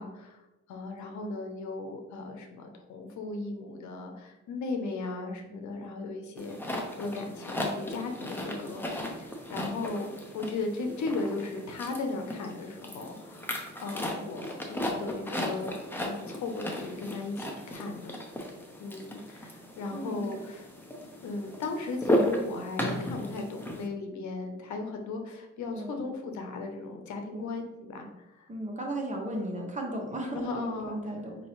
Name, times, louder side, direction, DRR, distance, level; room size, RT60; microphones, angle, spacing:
voice 1, 0.0-8.8 9.2-15.7 16.0-18.1 18.8-20.7 21.2-27.6 27.9-28.5 30.3-31.0, left 3 dB, 70° left, 4 dB, 0.8 m, -36 dB
sound 1, 6.4-23.9, equal, 5° left, 0.7 m, -35 dB
voice 2, 19.9-20.3 25.7-26.0 27.3-27.5 28.5-31.4, right 1 dB, 25° right, 1 dB, 1.1 m, -35 dB
5.3 x 2.8 x 3.1 m, 1.0 s
cardioid pair, 90°, 30 cm